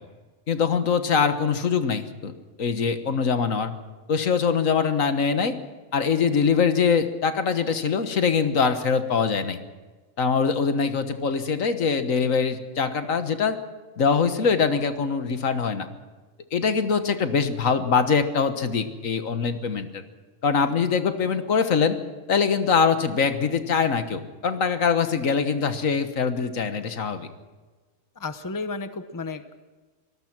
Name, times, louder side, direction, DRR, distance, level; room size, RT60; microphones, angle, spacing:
voice 1, 0.5-2.3 2.6-3.7 4.1-5.6 5.9-9.6 10.2-13.6 14.0-15.9 16.5-20.0 20.4-22.0 22.3-27.3, left 5 dB, 75° left, 9 dB, 1.8 m, -23 dB
voice 2, 28.2-29.5, left 3 dB, 15° left, 10 dB, 0.9 m, -33 dB
25.5 x 18.5 x 6.2 m, 1.3 s
omnidirectional pair, 1.4 m